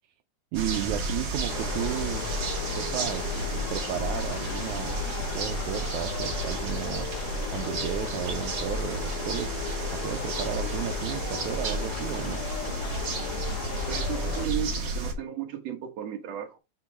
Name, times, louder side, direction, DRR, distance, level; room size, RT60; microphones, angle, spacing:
sound 1, 0.5-15.1, right 2 dB, 45° right, 1.8 m, -32 dB
voice 1, 0.5-2.3 2.7-3.3 3.7-5.0 5.3-7.1 7.5-9.6 9.9-12.5, right 11 dB, 80° right, 2.1 m, -33 dB
sound 2, 1.5-14.5, left 11 dB, 85° left, 2.3 m, -37 dB
voice 2, 13.9-16.6, right 9 dB, 60° right, 2.4 m, -34 dB
6.8 x 4.1 x 5.9 m
omnidirectional pair, 3.5 m